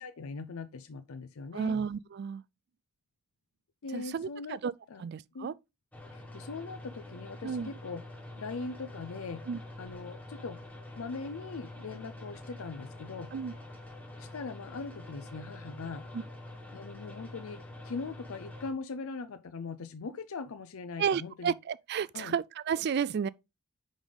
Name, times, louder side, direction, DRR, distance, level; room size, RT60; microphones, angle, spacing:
voice 1, 0.0-1.8 3.8-4.6 4.9-5.0 5.3-5.5 6.1-8.0 8.4-9.4 9.8-10.6 11.0-13.3 14.2-16.1 16.7-21.5 22.1-22.3, left 4 dB, 75° left, 0.5 m, -41 dB
voice 2, 1.5-2.4 3.9-4.7 5.0-5.5 7.4-7.7 9.5-9.6 13.3-13.5 16.1-16.2 21.0-23.3, right 7 dB, 50° right, 0.3 m, -32 dB
sound 1, 5.9-18.7, left 1 dB, 5° left, 1.3 m, -46 dB
5.3 x 5.0 x 3.8 m
head